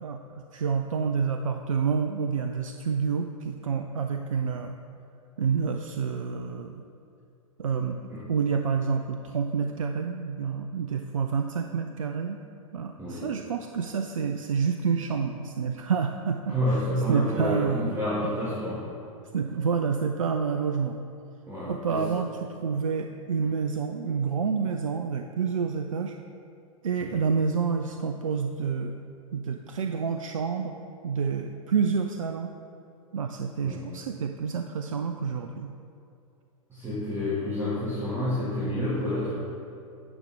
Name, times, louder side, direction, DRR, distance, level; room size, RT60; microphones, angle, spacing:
voice 1, 0.0-4.7 5.4-6.8 7.6-8.0 8.3-12.4 12.7-16.8 17.1-18.0 19.3-21.0 21.7-26.2 26.8-28.9 29.3-30.8 31.0-32.5 33.1-35.7, right 6 dB, 70° right, 5 dB, 0.4 m, -28 dB
voice 2, 13.0-13.3 16.5-18.9 21.5-22.0 27.0-27.2 33.6-33.9 36.7-39.4, left 1 dB, 15° right, -10 dB, 1.8 m, -29 dB
9.6 x 6.2 x 3.5 m, 2.7 s
figure-of-eight pair, 100°, 18 cm